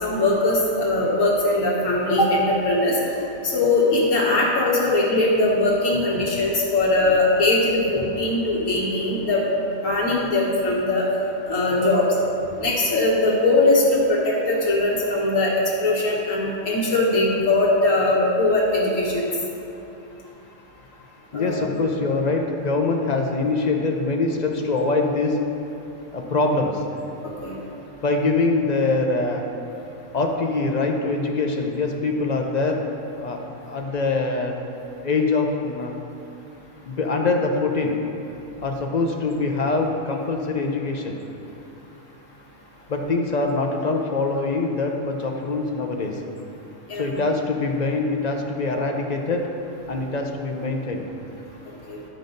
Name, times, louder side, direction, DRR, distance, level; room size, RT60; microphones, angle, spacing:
voice 1, 0.0-3.0 3.4-9.4 9.8-11.1 11.5-12.1 12.6-15.5 15.8-19.3 21.3-21.6 27.4-27.6 46.9-47.2 51.9-52.0, left 2 dB, 75° left, -4 dB, 1.9 m, -20 dB
voice 2, 21.3-25.5 26.1-26.8 28.0-29.5 30.1-32.9 33.2-34.6 35.0-35.9 36.9-38.0 38.6-41.2 42.9-46.2 46.9-49.5 49.9-51.1, left 3 dB, 45° left, 2 dB, 0.6 m, -24 dB
12.0 x 5.3 x 3.9 m, 2.9 s
omnidirectional pair, 1.4 m